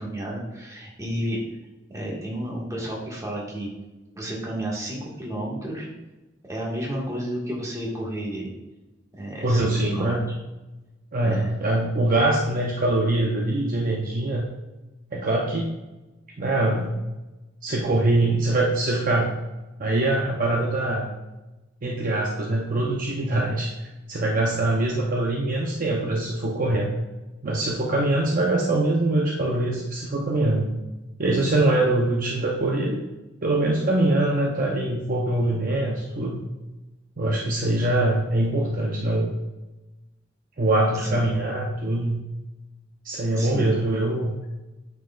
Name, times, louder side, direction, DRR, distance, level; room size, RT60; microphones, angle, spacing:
voice 1, 0.0-1.4 1.9-3.7 4.1-5.9 6.4-8.5 9.2-10.4 11.2-11.5 41.0-41.3 43.4-43.7, right 1 dB, 15° right, -4 dB, 1.6 m, -31 dB
voice 2, 9.4-10.2 11.1-14.5 15.1-15.7 16.4-17.0 17.6-19.3 19.8-21.1 21.8-23.7 24.1-27.0 27.4-30.7 31.2-33.0 33.4-36.4 37.2-39.3 40.6-42.2 43.0-44.3, right 2 dB, 45° right, -1 dB, 0.7 m, -23 dB
9.1 x 4.6 x 2.4 m, 1.1 s
head